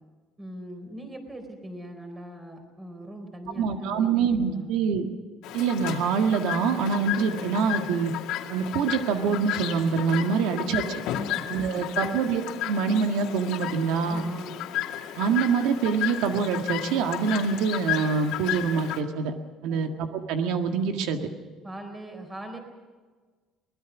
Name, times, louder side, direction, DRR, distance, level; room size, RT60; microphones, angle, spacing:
voice 1, 0.4-4.1 4.3-4.7 10.3-10.6 11.3-12.2 14.0-14.6 19.7-19.9 21.6-22.6, right 1 dB, 15° right, 5 dB, 4.1 m, -41 dB
voice 2, 3.6-5.1 5.5-8.1 8.5-11.0 11.5-12.4 12.7-14.2 15.2-19.3 19.6-21.2, right 5 dB, 85° right, 5 dB, 1.8 m, -25 dB
Chirp tweet, 5.4-19.0, left 12 dB, 80° left, 2.3 m, -33 dB
23.5 x 20.5 x 6.2 m, 1.4 s
cardioid pair, 155°, 0 cm